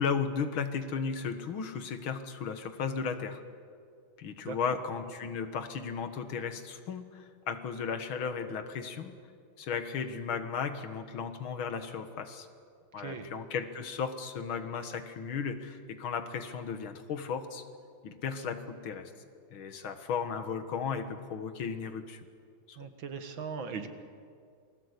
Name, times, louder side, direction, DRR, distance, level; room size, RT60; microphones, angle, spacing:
voice 1, 0.0-3.4 4.2-9.1 9.6-12.5 12.9-17.6 18.0-19.1 19.5-22.2 22.7-22.8, left 6 dB, 75° left, 9 dB, 2.2 m, -35 dB
voice 2, 22.8-23.9, right 5 dB, 65° right, 7 dB, 2.3 m, -39 dB
28.0 x 20.0 x 8.3 m, 2.3 s
omnidirectional pair, 2.3 m